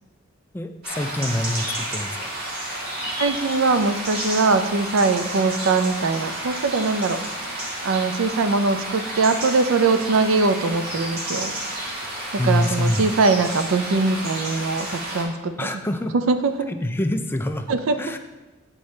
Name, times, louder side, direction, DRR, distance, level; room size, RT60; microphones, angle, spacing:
voice 1, 0.5-2.3 12.4-13.1 15.6-16.1 16.7-17.7 18.0-18.2, left 1 dB, 10° left, 6 dB, 0.3 m, -25 dB
sound 1, 0.8-15.2, right 1 dB, 55° right, 1.6 m, -31 dB
voice 2, 3.2-7.2 7.8-11.6 12.4-15.7 16.1-16.7 17.7-18.2, right 3 dB, 80° right, 9 dB, 0.5 m, -22 dB
8.5 x 4.6 x 3.2 m, 1.1 s
head